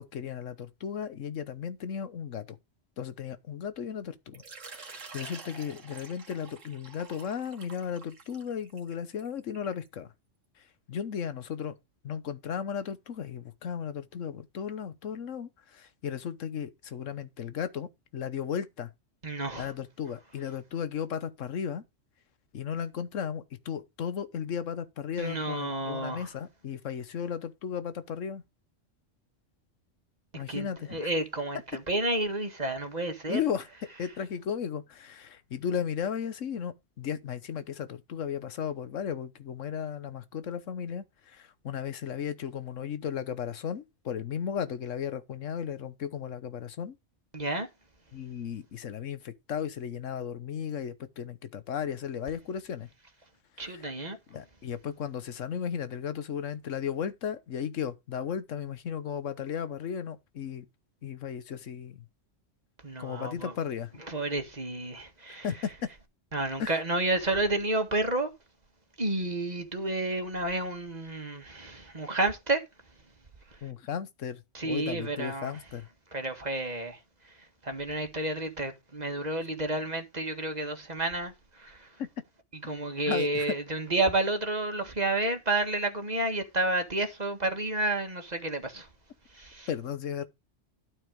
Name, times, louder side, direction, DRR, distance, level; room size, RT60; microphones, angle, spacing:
voice 1, 0.0-2.5 3.0-4.4 4.7-10.1 10.6-11.7 12.0-18.9 19.6-21.8 22.5-28.4 30.3-31.0 33.3-33.7 34.0-46.9 48.1-52.9 53.7-53.8 54.3-60.7 61.0-62.0 63.0-63.9 65.3-65.7 66.6-66.7 73.6-75.9 82.0-82.1 83.1-83.6 89.7-90.3, left 8 dB, 90° left, 1.3 m, -35 dB
Water / Liquid, 4.3-9.9, right 4 dB, 85° right, 2.0 m, -48 dB
voice 2, 19.2-19.7 25.2-26.3 30.3-33.4 47.3-47.7 53.6-54.2 62.8-63.5 64.1-65.5 66.3-68.3 69.0-72.6 73.5-73.6 74.5-75.5 76.1-82.0 82.6-88.9 89.3-89.7, right 2 dB, 35° right, 1.8 m, -31 dB
12.5 x 4.5 x 5.1 m
omnidirectional pair, 1.3 m